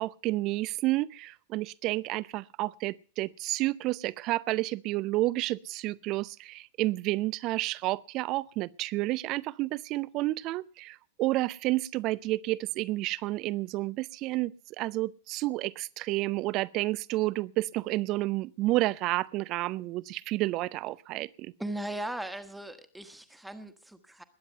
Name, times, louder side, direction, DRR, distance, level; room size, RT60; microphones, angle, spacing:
voice 1, 0.0-14.5 14.8-21.5, right 18 dB, 40° right, 0.6 m, -30 dB
voice 2, 21.6-24.2, right 1 dB, 5° right, 1.5 m, -38 dB
21.0 x 9.7 x 5.5 m
figure-of-eight pair, 90°, 0 cm